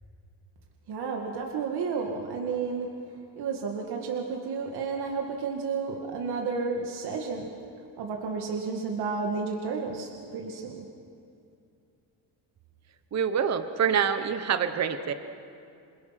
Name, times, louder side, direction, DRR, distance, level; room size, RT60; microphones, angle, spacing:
voice 1, 0.9-2.9 3.4-7.5 8.0-10.9, right 5 dB, 60° right, 0 dB, 2.2 m, -32 dB
voice 2, 13.1-15.1, right 7 dB, 35° right, 9 dB, 1.2 m, -26 dB
28.5 x 22.0 x 6.0 m, 2.5 s
cardioid pair, 130°, 44 cm